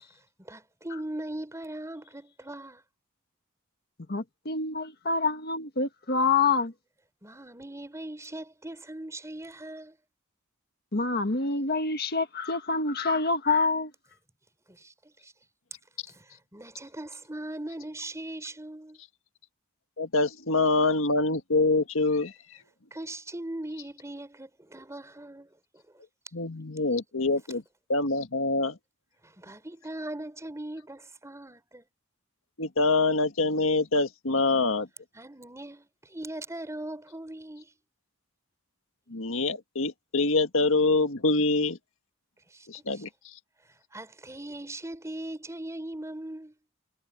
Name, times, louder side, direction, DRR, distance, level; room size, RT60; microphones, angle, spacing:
voice 1, 0.4-2.8 7.2-10.0 14.7-15.3 16.1-19.0 22.9-25.5 29.2-31.8 35.1-37.7 42.5-42.7 42.9-43.0 43.9-46.5, right 1 dB, 15° right, 4.3 m, -40 dB
voice 2, 4.1-6.7 10.9-13.9, left 4 dB, 50° left, 1.5 m, -26 dB
voice 3, 20.0-22.3 26.3-27.6 27.9-28.8 32.6-34.9 39.1-41.8 42.7-43.1, left 3 dB, 70° left, 1.8 m, -25 dB
head